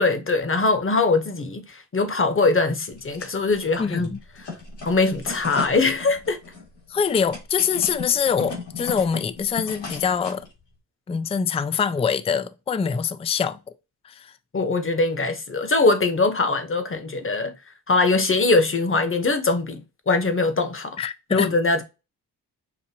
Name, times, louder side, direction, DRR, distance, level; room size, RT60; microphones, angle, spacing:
voice 1, 0.0-4.1 4.4-4.5 4.8-6.4 14.5-17.5 17.9-21.0 21.3-21.8, left 3 dB, 30° left, 1.0 m, -22 dB
sound 1, 2.9-3.7 4.0-10.5, left 4 dB, 80° left, 2.6 m, -36 dB
voice 2, 3.8-4.2 6.9-10.4 11.1-13.6 14.0-14.3 21.0-21.5, left 6 dB, 15° left, 0.4 m, -24 dB
6.0 x 2.5 x 2.8 m
cardioid pair, 60°, 41 cm